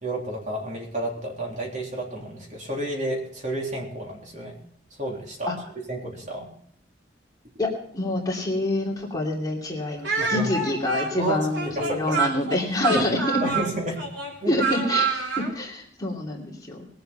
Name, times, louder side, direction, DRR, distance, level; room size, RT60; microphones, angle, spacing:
voice 1, 0.0-4.6 5.0-5.6 5.9-6.5 10.2-10.5 11.2-12.2 12.9-13.0 13.4-14.0 14.4-14.5, right 1 dB, 40° right, -1 dB, 3.5 m, -30 dB
voice 2, 7.6-13.4 14.5-16.8, left 1 dB, 20° left, -2 dB, 2.8 m, -27 dB
Speech, 10.0-15.5, right 5 dB, 90° right, 3.5 m, -27 dB
20.5 x 7.9 x 5.7 m, 0.62 s
head